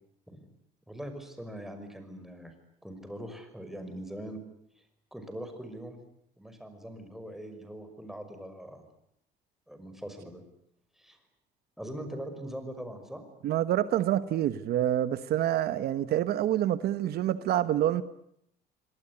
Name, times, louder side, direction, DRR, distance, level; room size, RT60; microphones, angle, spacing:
voice 1, 0.9-2.5 2.8-4.4 5.1-6.0 6.4-8.8 9.7-10.4 11.0-11.2 11.8-13.2, right 1 dB, ahead, 7 dB, 5.7 m, -41 dB
voice 2, 13.4-18.0, right 12 dB, 70° right, 14 dB, 1.1 m, -27 dB
26.0 x 19.0 x 9.8 m, 0.74 s
cardioid pair, 110°, 17 cm